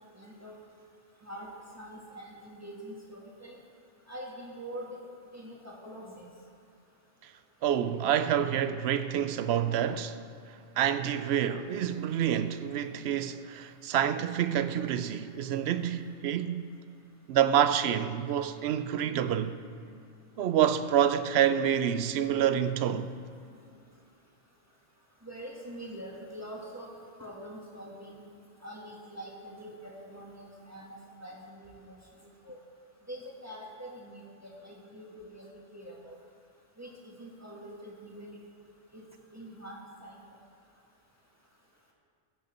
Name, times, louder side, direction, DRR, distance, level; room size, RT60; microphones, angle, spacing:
voice 1, 0.2-0.5 1.2-1.5 1.7-3.6 4.1-5.0 5.3-6.3 25.2-26.9 27.2-28.2 28.6-32.0 32.5-32.6 33.1-36.2 36.8-38.4 38.9-39.0 39.3-40.2, equal, 15° right, 1.5 m, -44 dB
voice 2, 7.6-10.2 10.8-16.6 17.3-19.6 20.4-23.1, right 9 dB, 65° right, 0.7 m, -27 dB
16.0 x 6.5 x 4.4 m
omnidirectional pair, 1.3 m